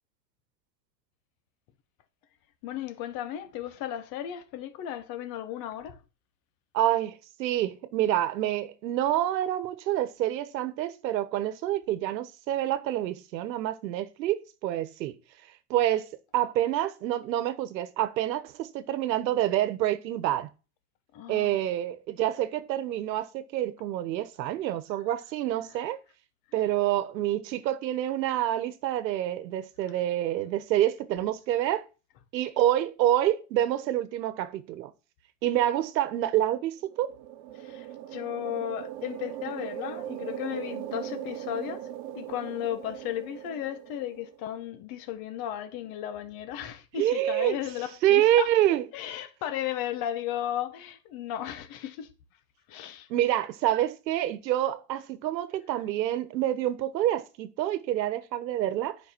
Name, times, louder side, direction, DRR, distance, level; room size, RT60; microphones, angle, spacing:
voice 1, 2.6-6.0 21.1-21.6 37.5-41.9 42.1-48.5 48.9-52.1 52.7-53.1, left 11 dB, 45° left, 1.3 m, -35 dB
voice 2, 6.7-15.2 15.7-16.1 16.3-20.5 21.3-26.0 26.5-31.9 32.3-34.9 35.4-37.2 46.9-47.6 48.0-48.9 53.1-59.0, right 13 dB, 85° right, 1.2 m, -27 dB
sound 1, 36.8-44.5, right 12 dB, 50° right, 0.9 m, -39 dB
9.4 x 5.3 x 4.5 m
supercardioid pair, 130°, 50 cm